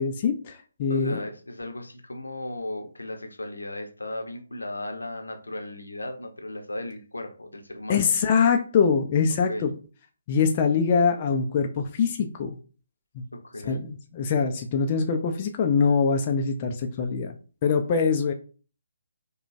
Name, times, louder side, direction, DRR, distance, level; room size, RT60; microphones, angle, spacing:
voice 1, 0.0-1.2 7.9-9.7 10.3-12.6 13.6-17.3 17.6-18.3, left 5 dB, 30° left, 4 dB, 0.4 m, -23 dB
voice 2, 0.9-8.1 9.5-9.7 13.3-13.8, left 1 dB, 80° left, 4 dB, 0.8 m, -36 dB
4.9 x 2.2 x 2.6 m, 0.38 s
figure-of-eight pair, 140°, 0 cm